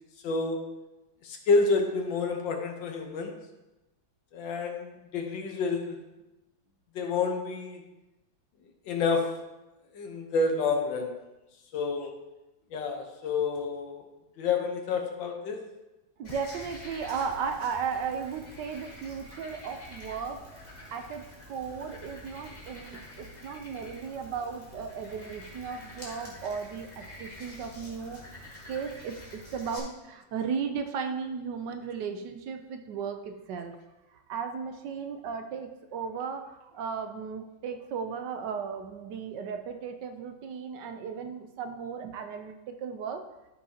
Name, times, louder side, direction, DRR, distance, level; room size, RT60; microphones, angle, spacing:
voice 1, 0.2-0.6 1.2-3.3 4.3-6.0 6.9-7.8 8.8-9.3 9.9-11.2 11.7-12.1 12.7-14.0 14.4-15.6, left 4 dB, 75° left, 4 dB, 1.7 m, -29 dB
Frog, 16.2-29.8, left 1 dB, 20° left, 1.9 m, -47 dB
voice 2, 16.2-20.4 20.9-21.2 21.5-28.2 28.7-33.8 34.3-43.2, right 6 dB, 70° right, 6 dB, 1.2 m, -35 dB
12.5 x 5.7 x 2.8 m, 1.0 s
omnidirectional pair, 2.1 m